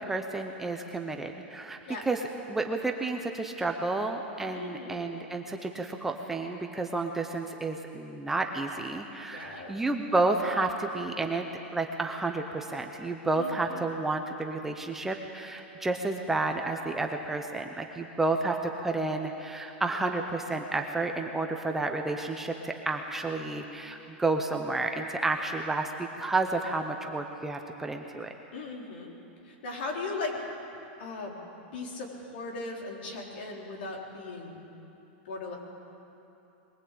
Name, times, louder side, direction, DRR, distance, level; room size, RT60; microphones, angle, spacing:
voice 1, 0.0-1.8 2.1-2.2 2.5-11.5 11.7-28.3, right 3 dB, 5° right, 3 dB, 0.7 m, -31 dB
voice 2, 4.5-5.0 9.3-9.8 13.4-13.8 28.5-29.1 29.4-30.4 31.0-31.4 31.7-34.6 35.2-35.6, left 3 dB, 60° left, 0 dB, 4.2 m, -38 dB
22.0 x 19.0 x 8.5 m, 3.0 s
supercardioid pair, 175°, 6 cm